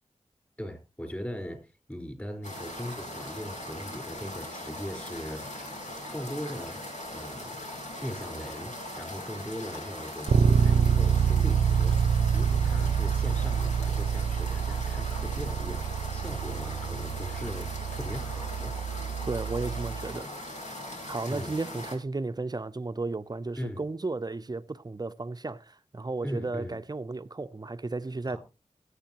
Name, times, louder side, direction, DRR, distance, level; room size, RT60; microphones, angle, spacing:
voice 1, 0.6-1.6 1.9-5.7 6.1-6.8 7.1-7.6 8.0-18.7 21.3-21.5 23.6-23.8 26.2-26.7 28.3-28.4, equal, 15° left, 4.4 m, -39 dB
sound 1, 2.4-22.0, left 1 dB, 80° left, 4.0 m, -40 dB
Bass guitar, 10.3-20.1, right 7 dB, 85° right, 0.5 m, -27 dB
voice 2, 19.3-20.3 21.1-28.4, right 3 dB, 35° right, 0.6 m, -34 dB
20.0 x 8.3 x 2.9 m
wide cardioid pair, 65°, 12 cm